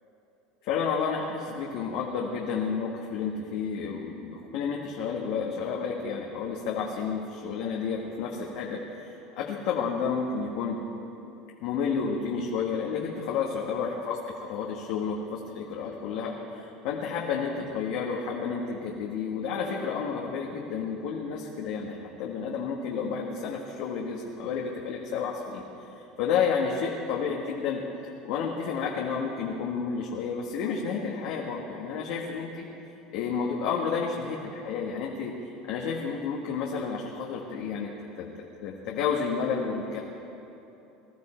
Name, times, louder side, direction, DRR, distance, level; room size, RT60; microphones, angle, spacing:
voice 1, 0.6-10.8 11.6-14.2 14.5-25.6 26.0-27.8 28.2-32.6 33.1-35.3 35.6-37.9 38.2-38.3 38.6-40.0, left 6 dB, 70° left, -2 dB, 1.6 m, -31 dB
20.0 x 13.0 x 4.4 m, 2.9 s
supercardioid pair, 120°, 0 cm